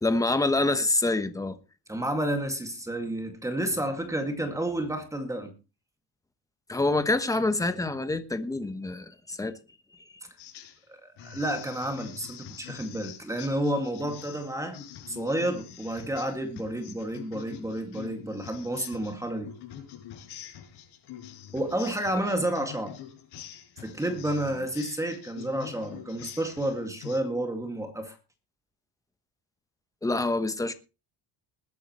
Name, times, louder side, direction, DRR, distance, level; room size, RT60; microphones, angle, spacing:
voice 1, 0.0-1.6 6.7-9.5 30.0-30.7, left 2 dB, 10° left, 1.1 m, -26 dB
voice 2, 1.9-5.5 10.9-14.8 15.1-19.5 21.5-22.9 23.8-28.2, right 1 dB, 10° right, 2.2 m, -30 dB
sound 1, 10.4-10.8 11.2-27.2, left 10 dB, 80° left, 5.9 m, -45 dB
20.5 x 10.5 x 3.1 m
cardioid pair, 155°, 40 cm